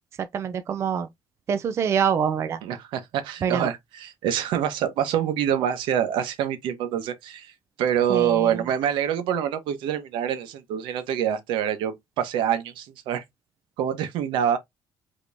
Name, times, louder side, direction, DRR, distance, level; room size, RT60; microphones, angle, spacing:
voice 1, 0.2-1.1 1.5-2.6 3.4-3.7 8.1-8.6, right 7 dB, 35° right, 0.4 m, -25 dB
voice 2, 2.6-7.5 7.8-13.2 13.8-14.6, right 9 dB, 80° right, 1.1 m, -26 dB
5.2 x 3.0 x 2.6 m
cardioid pair, 160°, 8 cm